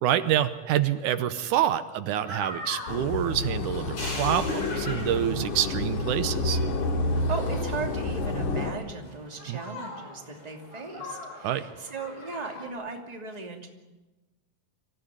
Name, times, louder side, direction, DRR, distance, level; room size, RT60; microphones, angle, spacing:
voice 1, 0.0-6.6 9.5-9.6 11.4-11.6, right 11 dB, 80° right, 11 dB, 2.3 m, -27 dB
sound 1, 2.2-12.7, left 1 dB, 40° left, 6.5 m, -41 dB
sound 2, 2.9-8.7, left 2 dB, 75° left, 3.6 m, -29 dB
voice 2, 7.1-13.7, right 3 dB, 15° right, 2 dB, 2.4 m, -37 dB
25.0 x 16.0 x 9.9 m, 1.1 s
omnidirectional pair, 3.6 m